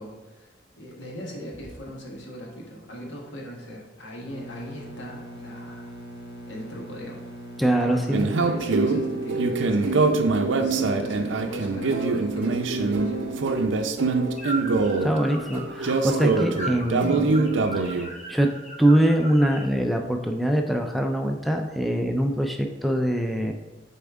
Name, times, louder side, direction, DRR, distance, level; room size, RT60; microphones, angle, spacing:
voice 1, 0.0-5.9 6.5-7.3 7.8-13.3, equal, 85° left, -2 dB, 1.5 m, -39 dB
sound 1, 4.3-13.7, right 1 dB, 60° left, 0.9 m, -41 dB
voice 2, 7.6-8.3 15.0-17.4 17.8-18.5 18.8-23.5, right 1 dB, ahead, 3 dB, 0.3 m, -23 dB
sound 2, 8.1-18.1, right 3 dB, 90° right, 0.5 m, -24 dB
sound 3, 14.4-19.7, right 2 dB, 40° left, 1.7 m, -37 dB
6.9 x 4.3 x 3.6 m, 1.2 s
head